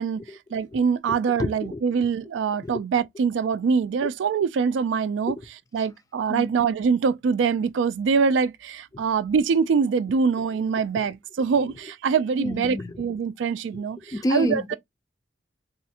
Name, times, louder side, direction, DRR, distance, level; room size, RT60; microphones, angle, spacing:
voice 1, 0.5-5.4 5.7-14.7, right 5 dB, 85° right, 0.3 m, -24 dB
voice 2, 1.4-1.8 2.6-2.8 4.0-4.1 6.3-6.5 8.9-9.0 12.4-12.9 13.7-14.7, left 1 dB, 20° left, 0.3 m, -29 dB
3.1 x 2.4 x 2.7 m
head